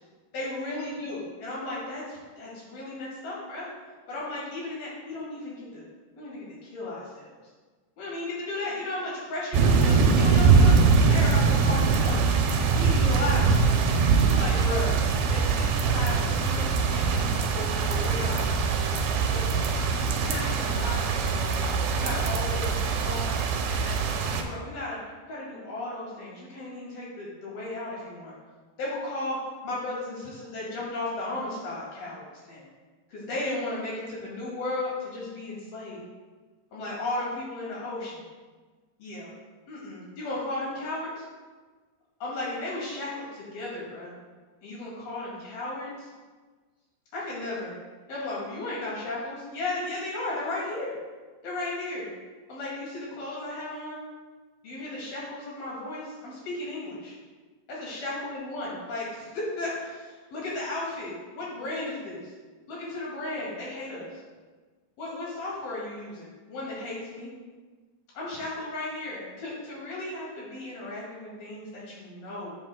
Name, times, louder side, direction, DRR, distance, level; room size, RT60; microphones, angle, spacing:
voice 1, 0.3-3.7 4.1-5.9 6.2-7.4 8.0-10.8 11.1-12.4 12.7-13.8 14.2-15.0 15.3-18.4 19.3-19.7 20.2-23.4 23.7-25.0 25.2-28.3 28.8-29.4 29.6-32.6 33.1-36.0 36.7-38.2 39.0-39.3 39.7-41.2 42.2-44.1 44.6-46.1 47.1-47.8 48.1-50.9 51.4-52.1 52.5-54.0 54.6-57.2 57.7-62.3 62.7-64.2 65.0-67.3 68.1-72.5, left 2 dB, 65° left, -6 dB, 4.0 m, -35 dB
sound 1, 9.5-24.4, right 5 dB, 75° right, 2.5 m, -23 dB
16.5 x 7.0 x 2.2 m, 1.4 s
omnidirectional pair, 4.7 m